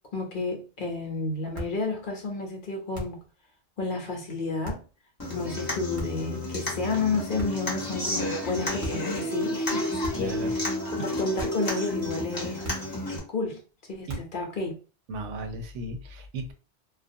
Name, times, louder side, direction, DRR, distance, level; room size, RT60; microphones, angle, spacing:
voice 1, 0.1-3.2 3.8-4.8 5.3-10.5 10.9-12.6 13.1-13.6 13.9-14.8, left 3 dB, 55° left, 0.7 m, -31 dB
sound 1, 1.5-1.8 2.9-3.3 4.6-4.9 5.9-6.3 7.4-7.8 8.8-9.1 10.0-10.4 11.4-11.7 12.6-13.0 14.1-14.4, right 1 dB, 35° right, 0.7 m, -38 dB
Human voice / Acoustic guitar, 5.2-13.2, left 1 dB, 25° left, 0.6 m, -31 dB
voice 2, 10.1-10.7 14.1-14.2 15.1-16.5, right 1 dB, 90° right, 0.9 m, -36 dB
2.3 x 2.2 x 2.6 m
omnidirectional pair, 1.2 m